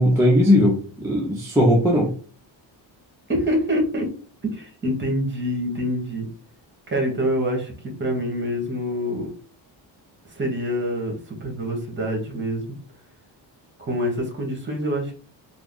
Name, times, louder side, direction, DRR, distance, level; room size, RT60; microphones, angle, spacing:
voice 1, 0.0-2.1, left 1 dB, 5° right, -3 dB, 0.3 m, -18 dB
voice 2, 3.3-4.1 4.4-6.3 6.9-7.7 8.0-9.3 10.3-12.8 13.8-15.2, equal, 25° right, 2 dB, 1.0 m, -26 dB
3.4 x 2.0 x 3.7 m, 0.41 s
cardioid pair, 160°, 45 cm